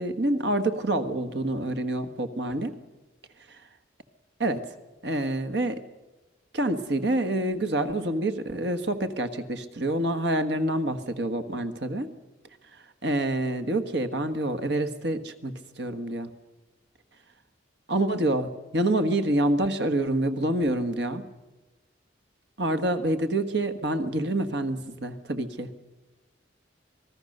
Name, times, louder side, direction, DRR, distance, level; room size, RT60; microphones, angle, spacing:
voice 1, 0.0-2.7 4.4-4.6 5.0-5.8 6.5-12.1 13.0-16.3 17.9-21.3 22.6-25.7, right 1 dB, 65° right, 9 dB, 1.5 m, -27 dB
27.0 x 19.5 x 6.7 m, 1.1 s
head